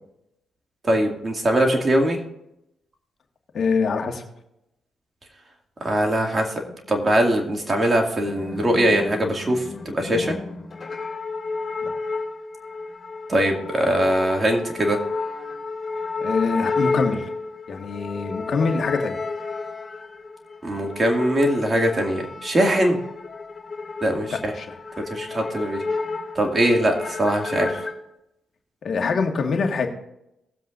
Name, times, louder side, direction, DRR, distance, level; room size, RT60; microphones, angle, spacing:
voice 1, 0.8-2.2 5.8-6.5 6.9-10.4 13.3-15.0 20.6-23.0 24.0-24.5 25.1-25.8 26.4-27.8, right 1 dB, 30° right, 2 dB, 2.3 m, -21 dB
voice 2, 3.5-4.2 11.8-11.9 16.2-17.3 17.7-19.1 24.3-24.8 28.8-29.9, left 4 dB, 55° left, 3 dB, 1.7 m, -24 dB
sound 1, 8.2-27.9, left 3 dB, 30° left, 2.9 m, -31 dB
19.5 x 7.7 x 2.6 m, 0.84 s
cardioid pair, 70°, 0 cm